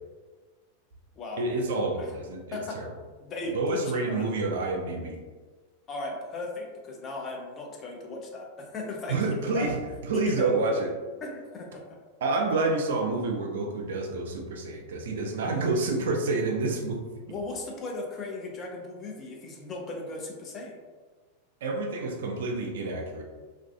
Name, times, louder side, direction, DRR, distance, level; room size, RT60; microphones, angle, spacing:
voice 1, 1.4-2.9 3.5-5.2 9.1-9.8 10.0-10.9 12.2-17.0 21.6-23.2, right 3 dB, 60° right, 1 dB, 0.4 m, -28 dB
voice 2, 3.2-4.2 5.9-9.7 10.1-10.5 11.2-11.8 17.3-20.8, left 2 dB, 30° left, -1 dB, 0.5 m, -37 dB
2.4 x 2.3 x 2.2 m, 1.4 s
figure-of-eight pair, 90°, 0 cm